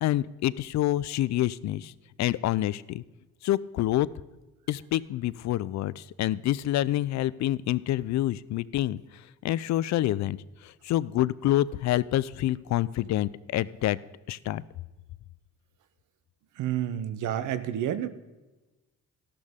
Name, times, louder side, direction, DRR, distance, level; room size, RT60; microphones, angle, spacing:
voice 1, 0.0-1.9 2.2-3.0 3.4-4.1 4.7-9.0 9.4-10.4 10.6-14.0 14.3-14.6, left 14 dB, 65° left, 20 dB, 0.5 m, -27 dB
voice 2, 16.6-18.1, right 10 dB, 80° right, 13 dB, 0.8 m, -29 dB
13.5 x 11.5 x 3.6 m, 1.1 s
cardioid pair, 90°, 30 cm